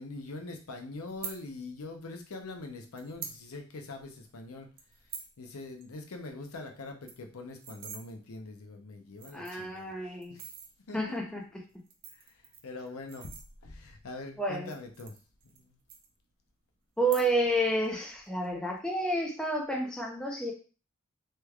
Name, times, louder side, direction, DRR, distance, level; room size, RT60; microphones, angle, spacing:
voice 1, 0.0-4.7 5.4-10.5 10.9-11.2 12.1-13.3 13.6-15.2 15.4-15.8, left 3 dB, 90° left, 4 dB, 0.7 m, -43 dB
sound 1, 1.1-1.4 2.3-2.4 2.9-3.4 3.8-3.9 4.1-4.3 4.8-5.3 5.7-5.8 6.1-6.2 6.5-6.6 6.9-8.0 8.7-8.8 9.1-9.7 10.2-10.7 11.7-13.9 14.5-15.6 15.9-16.5 17.0-17.6 17.8-18.3, right 7 dB, 45° right, 0.5 m, -45 dB
voice 2, 9.3-10.4 10.9-11.4 14.4-14.7 17.0-20.5, right 1 dB, 5° left, -1 dB, 0.5 m, -30 dB
3.2 x 3.2 x 2.3 m, 0.35 s
head